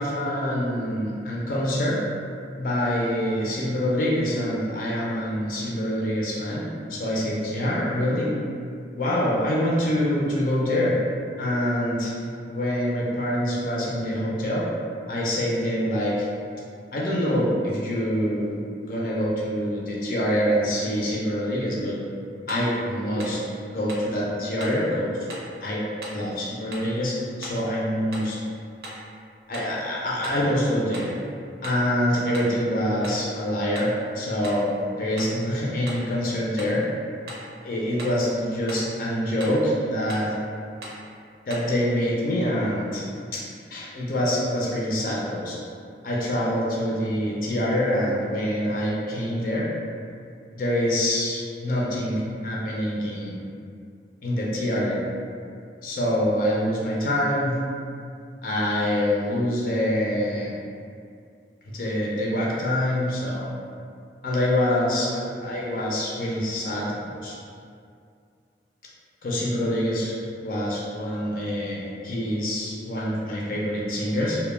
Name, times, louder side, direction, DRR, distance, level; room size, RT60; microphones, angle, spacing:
voice 1, 0.0-2.0 2.6-6.6 6.9-8.3 9.0-11.0 11.4-12.1 12.5-14.7 15.1-16.3 16.9-22.0 22.5-23.4 23.7-25.1 25.6-25.8 26.1-28.4 29.5-31.1 31.6-36.8 37.6-40.3 41.5-43.0 43.3-43.4 43.7-45.6 46.0-49.7 50.5-53.4 54.2-55.0 55.8-57.6 58.4-60.5 61.7-63.5 64.2-67.4 69.2-70.1 70.4-74.4, equal, 50° left, -5 dB, 0.4 m, -25 dB
sound 1, 22.5-22.7 23.2-23.4 23.9-24.1 24.6-24.8 25.3-25.5 26.0-26.2 26.7-26.9 27.4-27.7 28.1-28.4 28.8-29.1 29.5-29.8 30.2-30.5 30.9-31.2 31.6-31.9 32.3-32.6 33.0-33.3 33.8-34.0 34.4-34.7 35.2-35.4 35.9-36.1 36.6-36.8 37.3-37.5 38.0-38.2 38.7-38.9 39.4-39.7 40.1-40.3 40.8-41.0 41.5-41.8, right 1 dB, 60° right, 0.5 m, -39 dB
2.1 x 2.1 x 3.1 m, 2.3 s
head